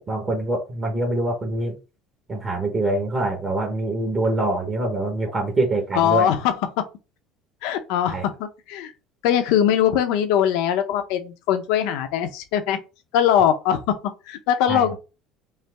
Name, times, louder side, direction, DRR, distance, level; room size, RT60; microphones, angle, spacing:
voice 1, 0.1-1.7 2.3-6.3 8.1-8.2 14.7-14.9, right 2 dB, 30° right, 1.3 m, -24 dB
voice 2, 5.9-6.5 7.6-8.9 9.2-12.8 13.1-13.8 14.3-15.0, left 9 dB, 80° left, 0.7 m, -21 dB
5.5 x 2.0 x 3.5 m
cardioid pair, 115°, 0 cm